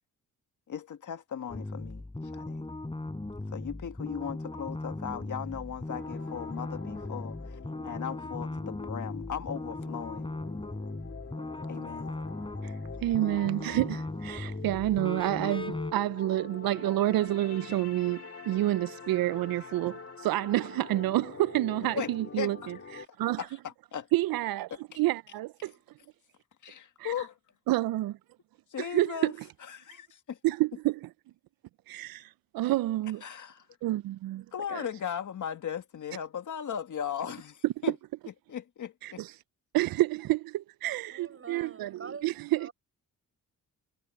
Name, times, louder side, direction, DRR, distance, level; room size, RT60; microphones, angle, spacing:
voice 1, 0.7-2.7 3.5-10.3 11.7-12.1 21.9-22.1 22.4-22.7 23.4-24.1 24.9-25.0 26.6-27.4 28.7-29.3 29.6-30.4 33.2-33.7 34.5-37.9 38.5-39.2, left 8 dB, 60° left, 1.9 m, -37 dB
sound 1, 1.5-15.9, left 2 dB, 15° left, 4.7 m, -38 dB
sound 2, 5.9-23.1, left 5 dB, 40° left, 3.4 m, -45 dB
voice 2, 12.6-23.5 24.1-25.7 27.0-27.1 27.7-28.2 28.8-29.3 30.4-31.1 31.9-33.2 33.8-34.5 34.7-34.9 39.0-39.3 39.7-42.7, right 16 dB, 80° right, 0.5 m, -29 dB
voice 3, 41.1-42.7, right 5 dB, 40° right, 7.0 m, -46 dB
cardioid pair, 95°, 35 cm